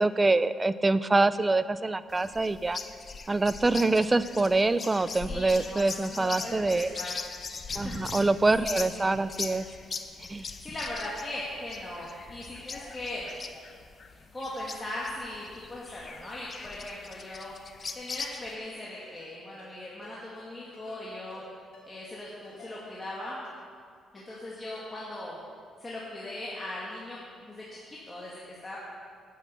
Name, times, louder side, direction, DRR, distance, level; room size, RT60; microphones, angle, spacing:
voice 1, 0.0-2.8 3.3-6.9 7.7-9.7 10.3-10.5, right 2 dB, 20° right, 14 dB, 0.5 m, -25 dB
sound 1, 2.1-18.6, left 4 dB, 40° left, 0.8 m, -40 dB
voice 2, 5.2-7.1 7.7-8.3 8.6-9.1 10.4-13.3 14.1-17.5 17.9-21.4 21.8-23.4 24.1-25.4 25.8-28.8, left 1 dB, 25° left, -6 dB, 2.2 m, -39 dB
Ringtone, 18.3-18.4 19.0-19.3 19.6-19.7 20.0-20.2 20.7-21.0 21.3-21.4 21.7-21.9 22.4-22.7 23.0-23.2 23.4-23.6 24.2-24.4 24.7-24.9, left 3 dB, 70° left, 3.5 m, -53 dB
9.3 x 8.3 x 8.2 m, 2.1 s
cardioid pair, 90°, 0 cm